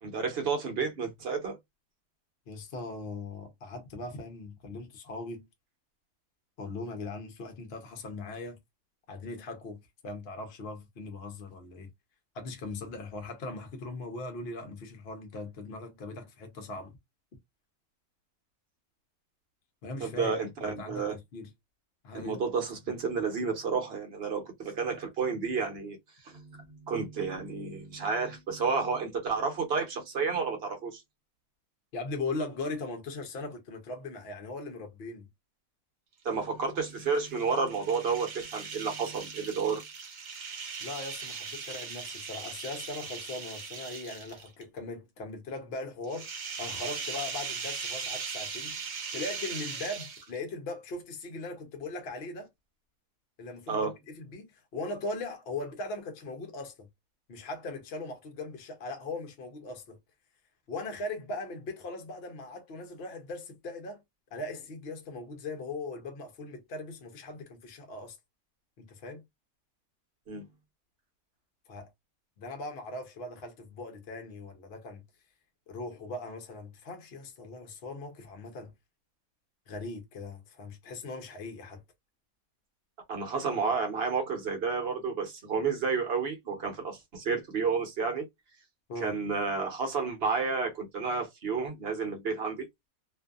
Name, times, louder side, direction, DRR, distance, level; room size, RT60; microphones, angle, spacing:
voice 1, 0.0-1.6 20.0-21.2 22.1-26.0 26.2-31.0 36.2-39.8 53.7-53.9 70.3-70.4 83.1-88.3 89.0-92.7, right 5 dB, 50° right, 0.9 m, -31 dB
voice 2, 2.5-5.4 6.6-8.6 9.1-11.9 12.3-16.9 19.8-21.5 22.0-22.4 31.9-35.3 40.8-46.3 46.6-52.5 53.4-56.9 57.3-60.0 60.7-64.0 64.3-68.2 68.8-69.2 71.7-71.9 72.4-75.0 75.7-78.7 79.7-81.8 88.9-89.2, left 2 dB, 55° left, 0.8 m, -39 dB
sound 1, 36.9-44.6 46.0-50.5, right 5 dB, 70° right, 1.2 m, -39 dB
2.5 x 2.5 x 2.3 m
omnidirectional pair, 1.5 m